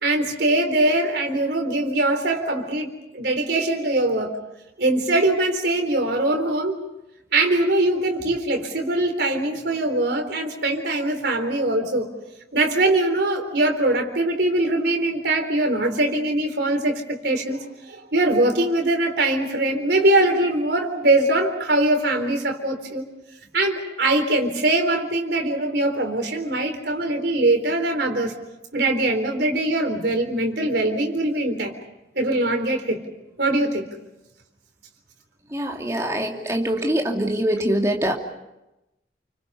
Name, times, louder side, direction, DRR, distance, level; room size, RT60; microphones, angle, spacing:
voice 1, 0.0-2.9 3.1-4.4 4.8-6.8 7.3-12.1 12.5-23.1 23.5-28.3 28.7-31.7 32.2-33.0 33.4-33.9, right 2 dB, 65° right, 4 dB, 3.8 m, -22 dB
voice 2, 35.5-38.1, right 1 dB, 15° right, 1 dB, 2.5 m, -23 dB
29.5 x 25.0 x 5.6 m, 0.96 s
head